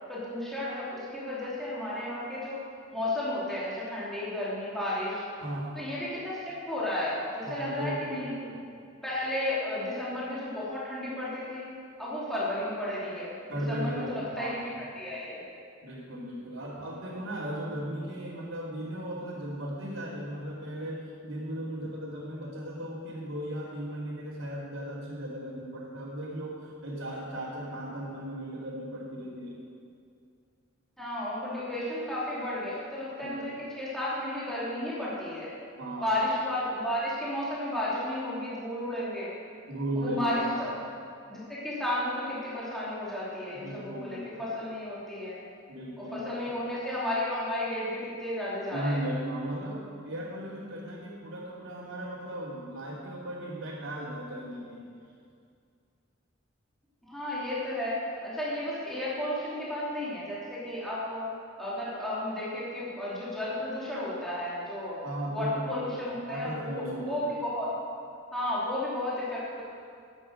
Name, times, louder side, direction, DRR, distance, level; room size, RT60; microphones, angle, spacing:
voice 1, 0.1-2.6 2.9-5.2 5.7-8.3 9.0-11.7 12.0-15.4 31.0-35.5 36.0-39.3 40.0-40.8 41.3-45.4 46.0-49.0 57.1-61.3 61.6-65.0 65.3-67.7 68.3-69.6, left 1 dB, ahead, -9 dB, 3.0 m, -33 dB
voice 2, 5.4-5.8 7.4-8.6 13.5-14.7 15.8-29.6 33.2-33.6 35.8-36.1 39.7-40.6 43.5-44.5 45.7-46.6 48.7-54.8 65.0-67.4, right 1 dB, 80° right, -9 dB, 2.8 m, -36 dB
11.5 x 10.0 x 6.4 m, 2.3 s
head